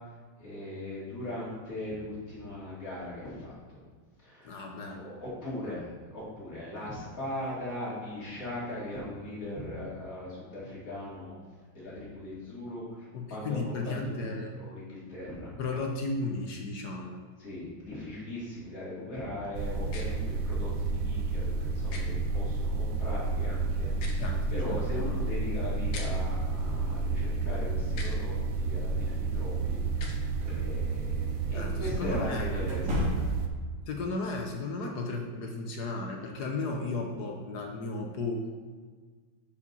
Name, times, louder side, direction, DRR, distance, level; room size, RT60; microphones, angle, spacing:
voice 1, 0.4-3.8 4.2-11.4 11.7-15.6 17.4-33.3, left 1 dB, 40° left, -7 dB, 2.8 m, -39 dB
voice 2, 4.4-5.0 5.6-5.7 13.1-14.5 15.6-17.2 24.2-25.2 31.5-32.7 33.9-38.5, left 3 dB, 60° left, 2 dB, 1.2 m, -35 dB
sound 1, 19.5-33.5, right 3 dB, 80° right, 0.7 m, -31 dB
sound 2, 19.9-20.1 21.9-22.0 23.9-24.2 25.9-26.1 27.9-28.2 29.9-30.2, left 4 dB, 85° left, 1.8 m, -42 dB
sound 3, 30.4-30.6 32.6-33.6, left 1 dB, 55° right, 2.5 m, -31 dB
6.9 x 5.0 x 5.4 m, 1.5 s
omnidirectional pair, 2.2 m